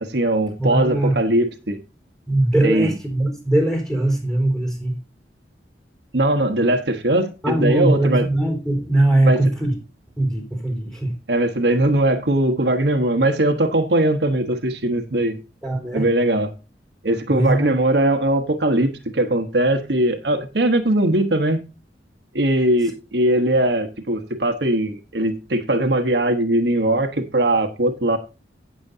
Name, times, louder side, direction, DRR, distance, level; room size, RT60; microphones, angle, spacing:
voice 1, 0.0-1.8 2.6-2.9 6.1-8.2 9.2-9.4 11.3-15.4 15.9-16.5 17.0-21.6 22.3-28.2, right 1 dB, 70° right, 1.2 m, -20 dB
voice 2, 0.6-1.2 2.3-5.0 7.4-9.8 10.2-11.1 15.6-16.1 17.3-17.7, right 1 dB, 5° left, 4.1 m, -20 dB
17.0 x 6.8 x 2.7 m
head